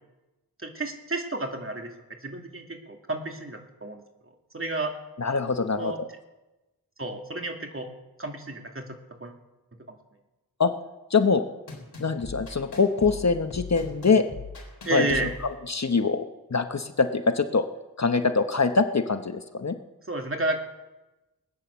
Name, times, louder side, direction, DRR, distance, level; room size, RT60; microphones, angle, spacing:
voice 1, 0.6-1.9 2.2-4.0 4.5-4.9 5.7-6.0 7.0-7.9 8.2-9.3 14.9-15.3 20.1-20.6, right 2 dB, 35° right, 3 dB, 2.2 m, -31 dB
voice 2, 5.2-6.1 10.6-10.7 11.1-11.5 12.0-14.2 14.9-15.3 15.7-17.7 18.0-19.8, left 4 dB, 45° left, 8 dB, 1.0 m, -24 dB
sound 1, 11.7-15.5, left 4 dB, 85° left, 3.8 m, -40 dB
19.5 x 9.2 x 7.0 m, 1.1 s
wide cardioid pair, 65°, 38 cm